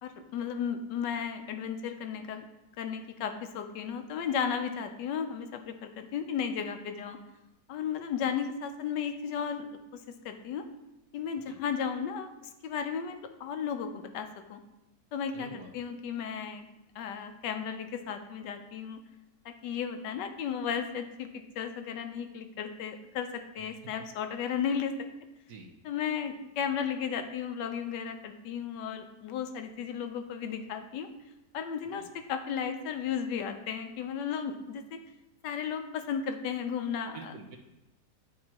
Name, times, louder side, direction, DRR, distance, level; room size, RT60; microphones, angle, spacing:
voice 1, 0.0-2.5 2.8-7.2 7.7-9.7 9.9-10.6 11.1-12.3 12.6-14.6 15.1-16.7 16.9-19.0 19.4-24.9 25.8-31.1 31.5-35.0 35.4-37.3, left 7 dB, 80° left, 7 dB, 1.3 m, -34 dB
voice 2, 15.3-15.7 23.6-23.7 25.5-25.7 32.0-32.1 37.1-37.6, right 4 dB, 65° right, 4 dB, 1.1 m, -47 dB
9.4 x 4.5 x 2.8 m, 0.96 s
omnidirectional pair, 1.9 m